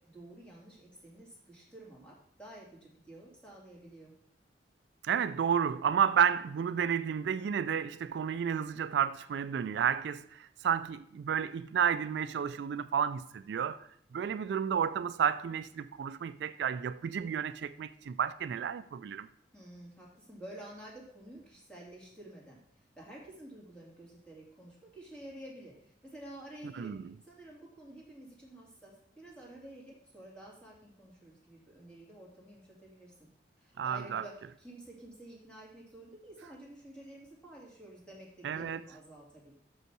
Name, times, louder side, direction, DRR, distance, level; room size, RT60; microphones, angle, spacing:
voice 1, 0.1-4.1 19.5-22.6 23.0-33.3 33.6-39.5, right 1 dB, 5° left, 2.4 m, -50 dB
voice 2, 5.0-13.8 14.1-19.3 26.8-27.0 33.8-34.2 38.4-38.8, right 8 dB, 70° right, 0.3 m, -31 dB
6.3 x 5.5 x 6.0 m
head